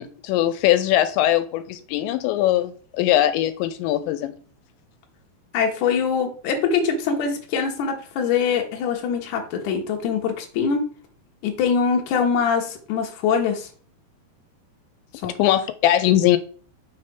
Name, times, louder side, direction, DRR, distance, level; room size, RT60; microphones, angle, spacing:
voice 1, 0.0-4.4 15.2-16.4, left 13 dB, 85° left, 11 dB, 2.9 m, -21 dB
voice 2, 5.5-10.8 11.4-13.7 15.2-15.3, left 6 dB, 65° left, 2 dB, 2.0 m, -23 dB
6.3 x 3.4 x 5.7 m, 0.42 s
omnidirectional pair, 5.1 m